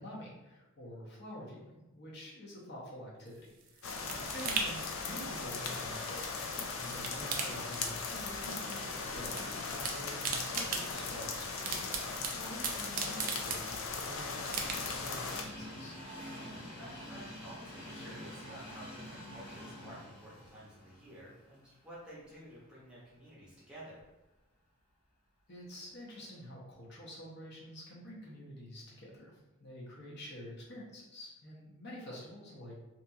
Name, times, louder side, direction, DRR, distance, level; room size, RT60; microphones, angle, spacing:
voice 1, 0.0-3.3 3.7-6.4 6.8-11.7 12.4-16.0 25.5-32.7, left 1 dB, 50° left, -5 dB, 0.7 m, -48 dB
sound 1, 3.3-6.5 6.8-8.4 8.6-9.4 9.7-14.0 14.5-15.1 15.5-15.6, right 5 dB, 40° right, 0.3 m, -39 dB
sound 2, 3.8-15.4, left 4 dB, 65° left, 0.4 m, -38 dB
voice 2, 4.1-4.5 12.4-12.5 16.7-24.0, right 1 dB, 5° right, -8 dB, 0.7 m, -52 dB
Train, 12.9-22.4 22.8-22.9 24.0-24.1, equal, 90° left, 1.0 m, -48 dB
2.8 x 2.3 x 2.7 m, 1.0 s
head